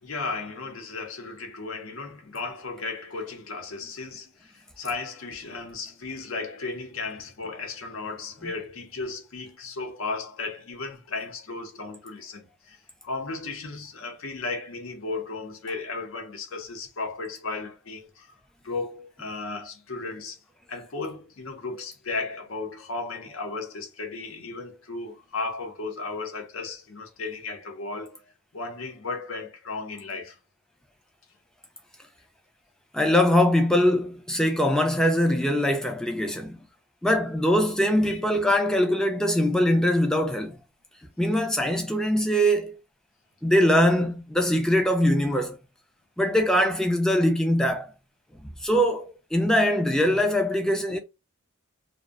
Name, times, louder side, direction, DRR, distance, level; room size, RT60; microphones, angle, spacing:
voice 1, 0.0-12.8 13.0-18.3 18.6-20.4 20.7-28.2 28.5-30.4 38.1-38.2, left 3 dB, 75° left, 0.6 m, -35 dB
voice 2, 32.9-36.6 37.0-40.6 41.2-42.8 43.4-45.6 46.2-47.9 48.6-51.0, equal, 5° left, 0.3 m, -22 dB
2.5 x 2.1 x 2.3 m
head